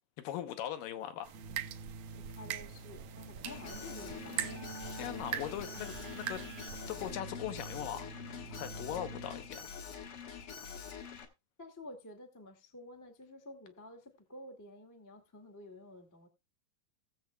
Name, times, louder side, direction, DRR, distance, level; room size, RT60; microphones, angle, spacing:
voice 1, 0.2-1.3 4.8-6.4 6.9-8.2 8.5-9.7, left 11 dB, 80° left, 2.5 m, -40 dB
sound 1, 1.2-7.1, right 11 dB, 80° right, 1.6 m, -43 dB
Keyboard (musical), 1.3-9.7, right 3 dB, 60° right, 0.8 m, -48 dB
voice 2, 2.1-4.6 11.6-16.3, left 1 dB, 15° left, 0.6 m, -51 dB
Alarm, 3.5-11.3, left 7 dB, 55° left, 1.8 m, -46 dB
18.5 x 7.4 x 2.2 m
omnidirectional pair, 4.0 m